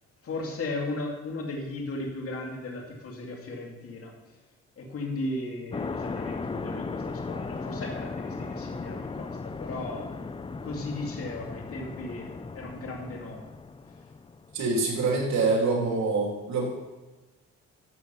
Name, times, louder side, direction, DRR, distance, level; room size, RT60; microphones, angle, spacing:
voice 1, 0.2-4.4 4.8-10.1 10.6-13.5, left 2 dB, 50° left, 0 dB, 2.6 m, -36 dB
sound 1, 5.7-14.8, left 4 dB, 20° left, 0.5 m, -37 dB
voice 2, 14.5-16.7, right 3 dB, 65° right, 0 dB, 3.4 m, -25 dB
12.5 x 6.6 x 5.8 m, 1.1 s
cardioid pair, 90°, 30 cm